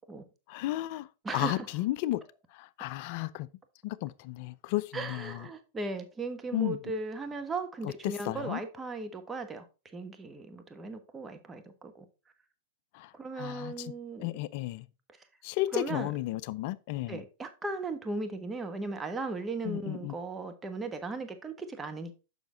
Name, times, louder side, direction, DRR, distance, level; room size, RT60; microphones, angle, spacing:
voice 1, 0.5-1.1 1.3-2.2 2.5-3.5 3.8-5.4 6.5-6.8 7.8-8.6 12.9-13.9 14.2-14.9 15.4-17.2 19.6-20.1, left 17 dB, 55° left, 0.5 m, -33 dB
voice 2, 1.2-1.7 4.9-9.7 9.9-12.1 13.1-14.3 15.2-15.3 15.7-16.1 17.1-22.2, right 3 dB, 15° right, 1.2 m, -37 dB
7.2 x 5.8 x 3.8 m
hypercardioid pair, 115°, 0 cm